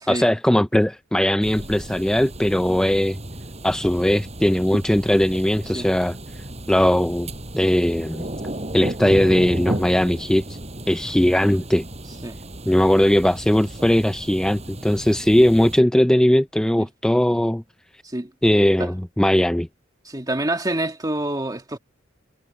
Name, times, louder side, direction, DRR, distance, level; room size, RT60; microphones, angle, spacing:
voice 1, 0.1-3.2 3.6-6.2 6.7-8.2 8.7-10.6 10.9-11.8 12.7-17.6 18.4-19.7, equal, 5° left, 0.3 m, -19 dB
sound 1, 1.4-15.8, right 1 dB, 35° right, 7.0 m, -34 dB
voice 2, 20.1-21.8, right 1 dB, 20° right, 2.0 m, -27 dB
head